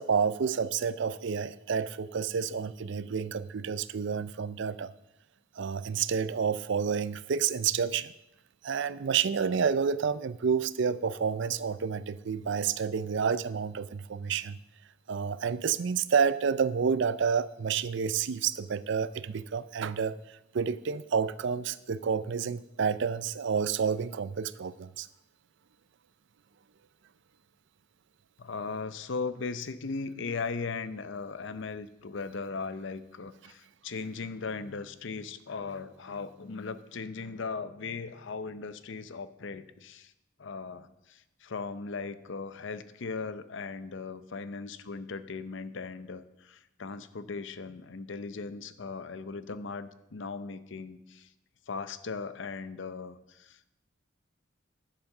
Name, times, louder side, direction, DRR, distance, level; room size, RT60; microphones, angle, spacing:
voice 1, 0.0-4.9 5.6-8.1 8.6-14.6 15.1-20.2 20.5-25.1, right 6 dB, 65° right, 17 dB, 0.5 m, -29 dB
voice 2, 28.4-40.1 40.4-51.3 51.7-53.7, left 4 dB, 65° left, 13 dB, 0.6 m, -38 dB
10.5 x 7.4 x 6.5 m, 0.89 s
head